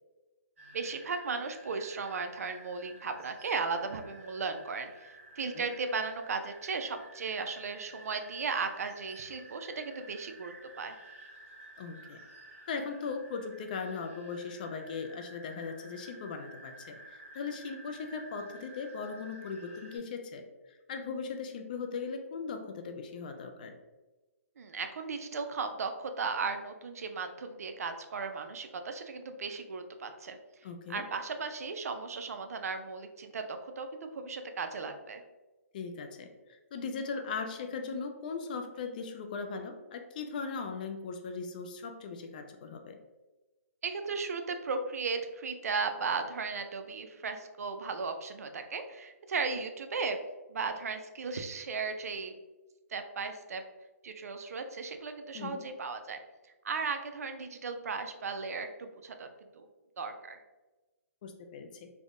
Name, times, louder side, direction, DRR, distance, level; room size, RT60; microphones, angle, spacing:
sound 1, 0.6-20.0, right 1 dB, 55° right, 1.5 m, -53 dB
voice 1, 0.7-11.0 24.6-30.4 30.9-35.2 43.8-50.2 50.5-52.3 52.9-53.6 54.0-56.2 56.6-59.3 59.5-59.7 60.0-60.4, right 4 dB, 70° right, 7 dB, 0.4 m, -36 dB
voice 2, 11.8-12.2 12.7-20.4 20.9-23.7 30.6-31.0 35.7-43.0 55.3-55.6 61.2-61.9, left 5 dB, 30° left, 6 dB, 0.3 m, -39 dB
3.5 x 2.1 x 3.6 m, 1.1 s
hypercardioid pair, 165°, 8 cm